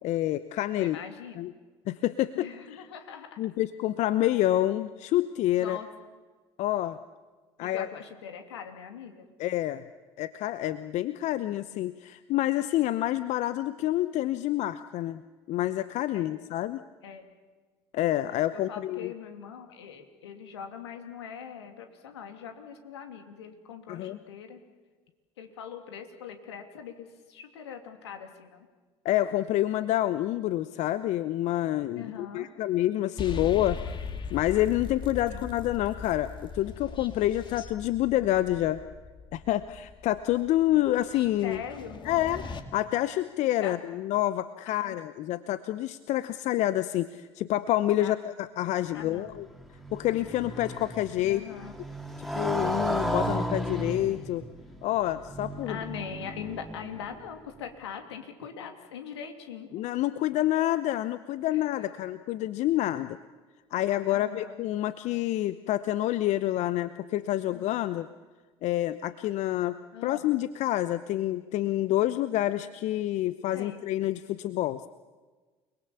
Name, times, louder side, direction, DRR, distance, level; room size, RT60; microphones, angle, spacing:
voice 1, 0.0-1.0 1.4-1.5 1.9-2.8 3.4-5.8 6.6-7.0 7.6-7.9 9.4-9.8 10.2-15.2 15.5-16.8 17.9-19.1 23.9-24.2 29.0-33.8 34.3-38.8 39.3-41.6 42.0-42.4 42.7-49.5 49.9-51.4 52.3-54.4 54.8-55.8 59.7-63.2 63.7-68.1 68.6-74.9, left 14 dB, 55° left, 13 dB, 0.8 m, -28 dB
voice 2, 0.8-1.5 2.3-3.4 5.5-5.9 7.6-9.3 16.1-16.4 17.0-17.2 18.7-24.6 25.4-28.7 31.9-32.5 35.3-35.5 41.4-42.2 43.6-43.8 44.7-45.0 48.0-48.1 48.9-49.4 51.2-51.7 55.7-59.8 61.5-61.9 64.1-64.5 67.5-67.7 69.9-70.3 73.5-73.8, left 7 dB, 80° left, 5 dB, 2.8 m, -42 dB
sound 1, 33.2-42.6, left 4 dB, 35° left, 2.7 m, -40 dB
Motorcycle, 49.1-57.2, equal, ahead, 3.1 m, -34 dB
29.5 x 21.5 x 7.1 m, 1.4 s
hypercardioid pair, 65°, 14 cm